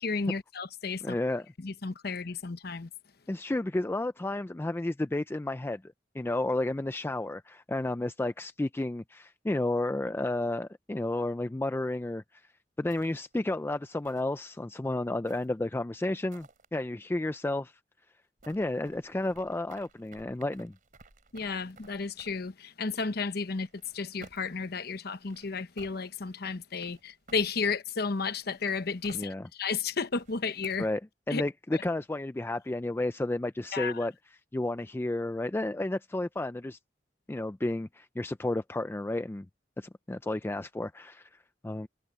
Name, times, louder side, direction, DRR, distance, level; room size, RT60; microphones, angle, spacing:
voice 1, 0.0-1.1 1.6-2.9 21.3-23.7 23.9-30.9 31.3-31.4 31.7-31.8 33.7-34.0, left 4 dB, 60° left, 0.9 m, -33 dB
voice 2, 1.0-1.5 3.3-5.8 6.1-12.4 12.8-17.7 18.5-20.7 29.1-29.5 30.8-31.0 31.3-34.1 34.5-36.8 37.3-39.5 39.8-41.4 41.6-41.9, left 2 dB, 15° left, 0.4 m, -32 dB
sound 1, 12.9-13.4 14.0-14.6 15.2-15.7 16.3-16.7 18.4-22.5 23.6-24.6 25.2-26.0 26.7-27.8 28.4-29.3 30.0-31.0, right 3 dB, 50° right, 3.2 m, -56 dB
head